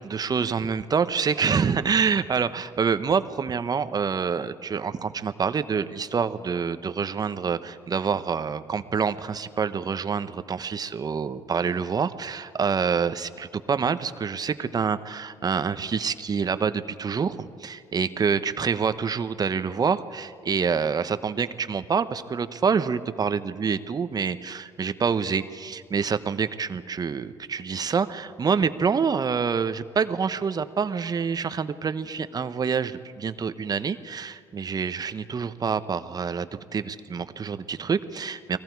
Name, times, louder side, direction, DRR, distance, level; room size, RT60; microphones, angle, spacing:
voice 1, 0.0-38.6, right 6 dB, 40° right, 12 dB, 1.1 m, -27 dB
29.5 x 20.5 x 4.7 m, 2.2 s
supercardioid pair, 70°, 11 cm